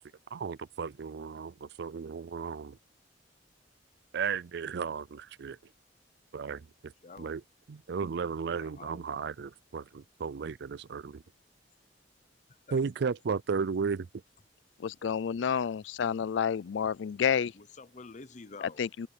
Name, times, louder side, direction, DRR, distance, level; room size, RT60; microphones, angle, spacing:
voice 1, 0.3-2.7 4.1-5.6 6.3-6.7 7.2-7.4 7.7-11.2 12.7-14.1, right 5 dB, 65° right, 0.4 m, -34 dB
voice 2, 7.0-7.4 8.4-9.1 12.7-12.8 17.5-18.8, left 4 dB, 40° left, 0.8 m, -48 dB
voice 3, 14.8-17.5 18.6-19.1, left 7 dB, 80° left, 0.4 m, -30 dB
head